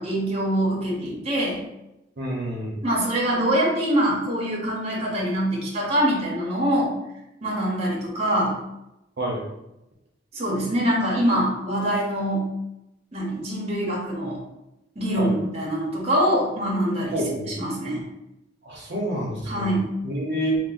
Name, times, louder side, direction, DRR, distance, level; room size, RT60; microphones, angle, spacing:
voice 1, 0.0-1.6 2.8-6.9 7.4-8.6 10.3-12.5 13.1-14.4 15.0-18.0 19.5-19.9, right 1 dB, 35° right, -3 dB, 0.9 m, -24 dB
voice 2, 2.2-2.7 9.2-9.4 15.2-15.3 17.1-17.5 18.6-19.7 20.0-20.6, right 1 dB, 65° right, -3 dB, 0.7 m, -28 dB
2.8 x 2.0 x 4.0 m, 0.89 s
head